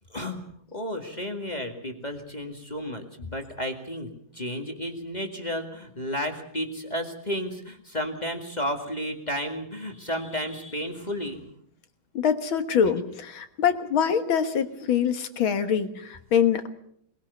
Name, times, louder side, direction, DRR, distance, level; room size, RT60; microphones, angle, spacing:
voice 1, 0.1-11.5, equal, 20° left, 3 dB, 2.1 m, -32 dB
voice 2, 12.1-16.7, left 7 dB, 80° left, 9 dB, 2.3 m, -24 dB
21.0 x 21.0 x 6.9 m, 0.67 s
omnidirectional pair, 2.2 m